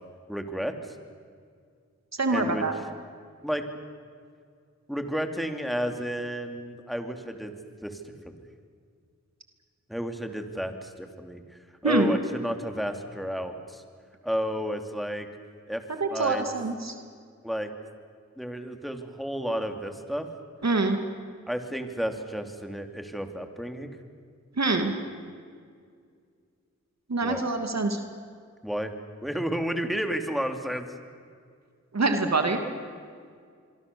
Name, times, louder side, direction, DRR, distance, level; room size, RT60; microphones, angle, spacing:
voice 1, 0.3-0.7 2.3-2.6 3.4-3.6 4.9-7.5 7.8-8.3 9.9-13.8 14.2-15.3 15.7-15.8 16.1-16.4 17.4-17.7 18.4-20.3 21.5-23.9 27.2-27.4 28.6-28.9 29.2-30.9, equal, ahead, 5 dB, 2.9 m, -32 dB
voice 2, 2.2-2.7 11.8-12.1 16.0-16.9 20.6-21.0 24.6-24.9 27.1-28.0 31.9-32.6, right 3 dB, 60° right, 5 dB, 2.5 m, -25 dB
25.5 x 23.5 x 7.0 m, 2.1 s
cardioid pair, 45°, 30 cm